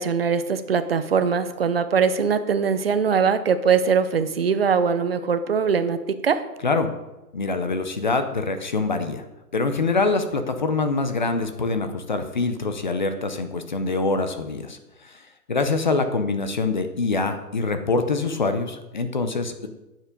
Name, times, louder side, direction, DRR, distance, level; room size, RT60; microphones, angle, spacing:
voice 1, 0.0-6.4, right 6 dB, 40° right, 11 dB, 0.5 m, -22 dB
voice 2, 7.3-9.2 9.5-15.2 15.5-19.7, left 3 dB, 30° left, 8 dB, 0.5 m, -25 dB
9.1 x 7.3 x 5.1 m, 0.99 s
hypercardioid pair, 165°, 48 cm